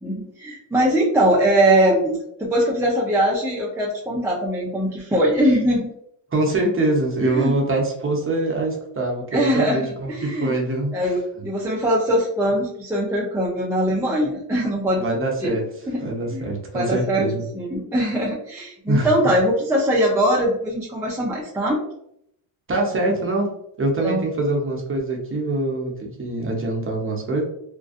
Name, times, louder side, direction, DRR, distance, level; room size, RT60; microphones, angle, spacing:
voice 1, 0.0-5.9 7.2-7.5 9.3-9.8 10.1-10.5 10.9-15.0 15.4-15.5 15.9-16.5 16.7-21.8 24.0-24.2, right 1 dB, 5° right, -5 dB, 0.4 m, -21 dB
voice 2, 6.3-10.9 11.4-11.5 15.0-15.6 16.0-17.4 18.9-19.1 22.7-27.4, right 2 dB, 25° right, 0 dB, 0.8 m, -24 dB
2.6 x 2.2 x 2.4 m, 0.74 s
cardioid pair, 85°, 49 cm